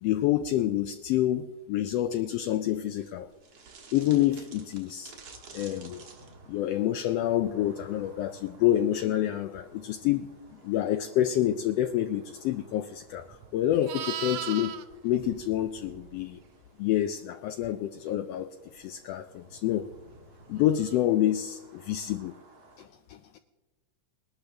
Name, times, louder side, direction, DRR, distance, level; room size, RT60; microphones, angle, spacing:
voice 1, 0.0-3.3 3.9-5.1 5.5-6.0 6.5-10.3 10.6-14.8 15.0-16.4 16.8-19.9 20.5-22.3 22.8-23.4, left 12 dB, 90° left, 9 dB, 1.4 m, -28 dB
sound 1, 3.0-22.9, right 4 dB, 50° right, 2.2 m, -54 dB
Livestock farm animals working animals, 13.1-16.4 20.8-21.0, right 10 dB, 75° right, 1.7 m, -39 dB
20.5 x 12.0 x 3.4 m, 1.2 s
omnidirectional pair, 3.4 m